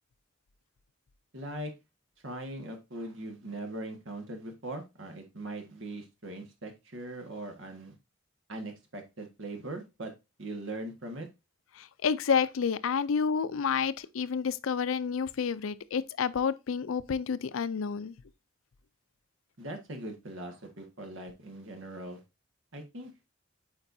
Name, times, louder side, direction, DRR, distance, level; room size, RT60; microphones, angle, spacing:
voice 1, 1.3-1.7 2.2-7.9 8.5-10.1 10.4-11.3 19.6-22.2 22.7-23.1, right 1 dB, 75° right, 1.6 m, -40 dB
voice 2, 11.8-18.1, left 6 dB, 85° left, 0.4 m, -29 dB
8.7 x 4.4 x 2.7 m
head